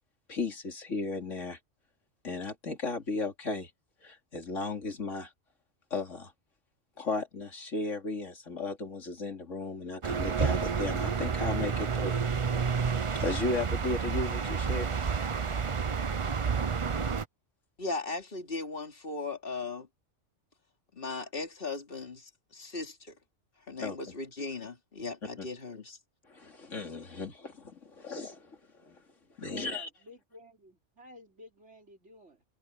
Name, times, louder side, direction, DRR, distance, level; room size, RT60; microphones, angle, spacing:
voice 1, 0.3-1.6 2.2-3.7 4.0-5.3 5.9-6.3 7.0-12.2 13.1-15.0 23.8-24.0 25.4-25.5 26.3-29.0 29.4-29.9, left 3 dB, 80° left, 3.1 m, -35 dB
sound 1, 10.0-17.2, right 6 dB, 35° right, 0.6 m, -30 dB
voice 2, 17.8-19.9 20.9-23.2 23.6-26.0, left 3 dB, 45° left, 3.0 m, -38 dB
voice 3, 29.4-32.4, equal, 65° right, 4.5 m, -53 dB
omnidirectional pair, 1.3 m